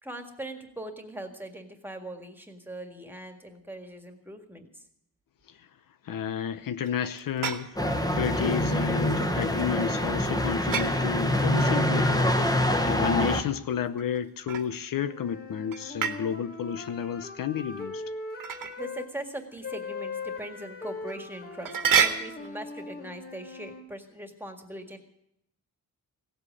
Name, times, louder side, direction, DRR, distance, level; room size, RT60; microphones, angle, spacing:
voice 1, 0.0-4.8 18.8-25.0, right 1 dB, 5° right, 1.9 m, -41 dB
voice 2, 6.0-7.8 8.1-18.0, left 8 dB, 70° left, 0.8 m, -31 dB
sound 1, 6.8-8.0 10.7-11.0 14.0-15.0 15.7-16.2 18.4-18.8 19.6-19.7 20.2-20.3 21.1-21.2 21.6-22.5, right 7 dB, 70° right, 1.6 m, -28 dB
sound 2, 7.8-13.4, left 1 dB, 10° left, 1.2 m, -25 dB
sound 3, 15.0-19.1 19.6-23.8, left 3 dB, 25° left, 2.0 m, -40 dB
17.0 x 8.0 x 9.7 m
wide cardioid pair, 165°, 34 cm